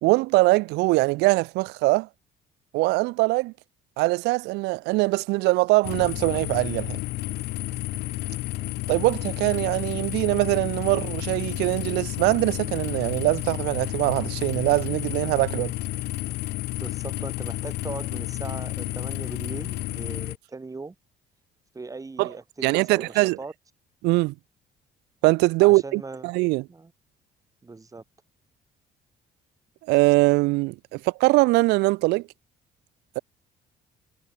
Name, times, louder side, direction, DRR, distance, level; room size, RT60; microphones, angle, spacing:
voice 1, 0.0-2.1 2.7-3.5 4.0-7.0 8.9-15.7 22.2-22.3 22.6-23.4 24.0-24.3 25.2-26.6 29.9-32.3, right 23 dB, 90° right, 0.4 m, -22 dB
sound 1, 5.8-20.4, left 18 dB, 85° left, 2.0 m, -31 dB
voice 2, 16.8-21.0 21.7-23.5 25.6-26.3 26.7-26.9 27.6-28.0, right 3 dB, 20° right, 5.2 m, -39 dB
cardioid pair, 110°, 17 cm